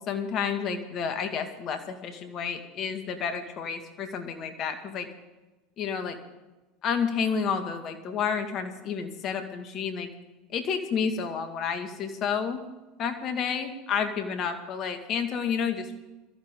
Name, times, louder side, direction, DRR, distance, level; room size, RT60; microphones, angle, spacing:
voice 1, 0.1-5.1 5.8-6.2 6.8-10.1 10.5-12.6 13.0-15.9, left 6 dB, 45° left, 7 dB, 2.1 m, -30 dB
21.5 x 14.0 x 3.8 m, 1.1 s
hypercardioid pair, 85°, 0 cm